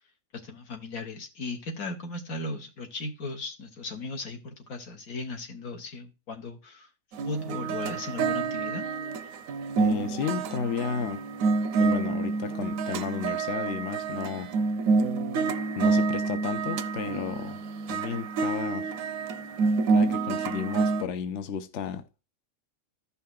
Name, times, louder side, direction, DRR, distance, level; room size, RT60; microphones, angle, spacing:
voice 1, 0.4-6.9 7.2-8.9, left 2 dB, 85° left, 1.7 m, -37 dB
sound 1, 7.1-21.0, right 4 dB, 75° right, 1.0 m, -28 dB
voice 2, 9.8-11.2 11.8-14.5 15.7-17.6 17.9-18.9 19.9-22.1, left 7 dB, 60° left, 1.0 m, -33 dB
15.0 x 5.6 x 2.3 m
omnidirectional pair, 1.4 m